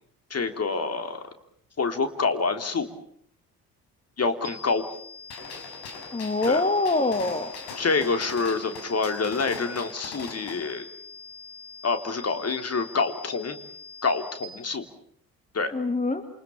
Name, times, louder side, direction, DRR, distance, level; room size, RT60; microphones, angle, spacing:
voice 1, 0.3-1.2 1.8-2.9 4.2-4.9 6.5-6.6 7.8-10.8 11.8-13.6 14.0-14.9 15.5-15.7, left 4 dB, 30° left, 8 dB, 3.5 m, -27 dB
sound 1, 4.4-14.4, left 4 dB, 50° right, 2.5 m, -45 dB
Gunshot gunfire, 5.3-10.7, left 4 dB, 60° left, 6.4 m, -41 dB
voice 2, 6.1-7.6 15.7-16.2, left 2 dB, 15° left, 9 dB, 2.3 m, -24 dB
28.5 x 26.0 x 7.2 m, 0.65 s
figure-of-eight pair, 50°, 47 cm